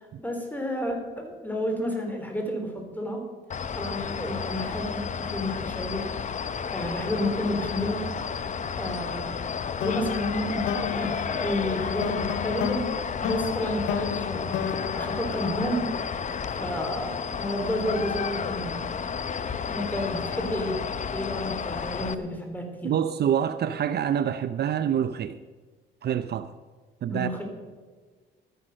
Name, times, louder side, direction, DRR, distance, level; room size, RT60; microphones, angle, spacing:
voice 1, 0.2-3.2 3.7-6.1 6.7-8.1 8.4-8.5 8.8-9.4 9.8-12.9 13.2-15.9 16.6-18.9 19.7-20.8 21.1-22.9 27.1-27.4, left 1 dB, 10° left, 3.4 m, -31 dB
sound 1, 3.5-22.1, left 6 dB, 40° left, 0.7 m, -32 dB
sound 2, 9.8-16.2, left 10 dB, 80° left, 0.5 m, -33 dB
voice 2, 22.8-25.4 26.0-26.5 27.0-27.3, right 9 dB, 55° right, 0.5 m, -26 dB
12.5 x 10.0 x 6.5 m
cardioid pair, 90°, 20 cm